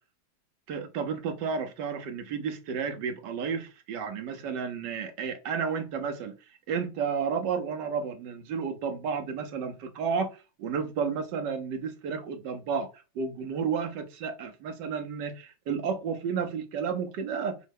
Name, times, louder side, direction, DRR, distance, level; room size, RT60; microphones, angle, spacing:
voice 1, 0.7-6.4 6.7-17.6, right 6 dB, 75° right, 1.4 m, -32 dB
5.5 x 2.1 x 3.4 m
omnidirectional pair, 1.9 m